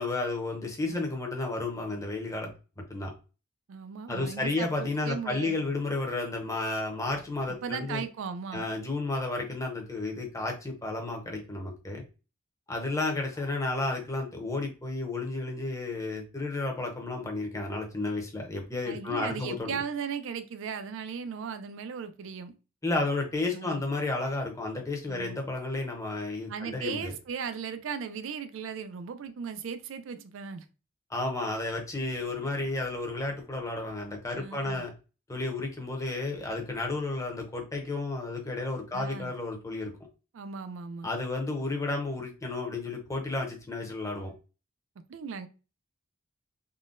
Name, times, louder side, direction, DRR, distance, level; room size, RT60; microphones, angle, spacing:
voice 1, 0.0-2.5 2.8-3.1 4.1-8.0 8.5-12.0 12.7-19.8 22.8-27.1 31.1-34.9 35.3-39.9 41.0-44.3, left 2 dB, 15° left, 0.7 m, -32 dB
voice 2, 3.7-5.6 7.6-8.7 18.9-22.5 23.5-23.8 25.1-25.4 26.5-30.7 34.4-34.8 38.9-39.3 40.3-41.1 45.1-45.5, right 6 dB, 65° right, 0.4 m, -37 dB
3.7 x 2.1 x 2.4 m
head